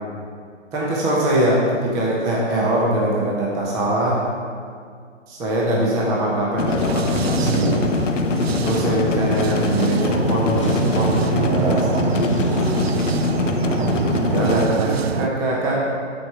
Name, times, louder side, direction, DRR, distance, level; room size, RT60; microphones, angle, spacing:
voice 1, 0.7-4.2 5.3-7.9 8.6-12.9 14.2-15.9, right 1 dB, 10° right, -4 dB, 0.8 m, -22 dB
sound 1, 6.6-14.7, left 6 dB, 85° left, 0.7 m, -23 dB
sound 2, 6.7-15.3, right 8 dB, 55° right, 0.5 m, -25 dB
Fireworks, 9.6-14.8, left 2 dB, 25° left, 0.5 m, -39 dB
12.5 x 4.9 x 4.5 m, 2.1 s
hypercardioid pair, 155°, 37 cm